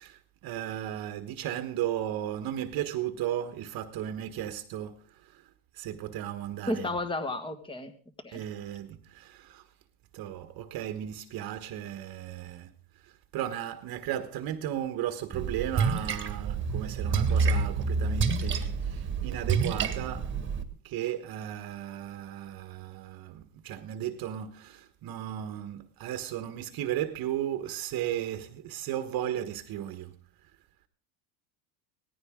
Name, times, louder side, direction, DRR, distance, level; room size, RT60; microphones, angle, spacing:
voice 1, 0.0-4.9 5.8-6.9 8.3-9.6 10.1-12.7 13.3-20.5 20.8-30.1, right 11 dB, 45° right, 1.4 m, -35 dB
voice 2, 6.7-7.9 8.2-8.4, left 2 dB, 10° left, 1.7 m, -32 dB
Splash splatter, 15.3-20.6, right 5 dB, 25° right, 1.7 m, -28 dB
18.5 x 14.5 x 3.7 m
supercardioid pair, 125°, 48 cm